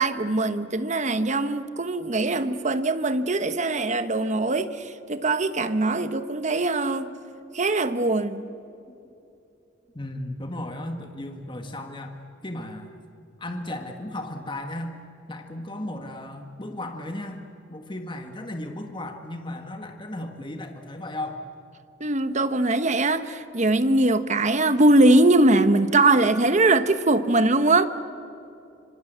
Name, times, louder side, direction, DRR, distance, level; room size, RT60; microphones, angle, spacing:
voice 1, 0.0-7.1 7.5-8.4 22.0-27.9, right 2 dB, 40° right, 11 dB, 1.2 m, -21 dB
voice 2, 9.9-12.1 12.4-12.9 13.4-15.0 15.3-17.4 17.7-21.4, left 1 dB, 25° left, 4 dB, 1.7 m, -35 dB
26.0 x 26.0 x 8.1 m, 2.7 s
head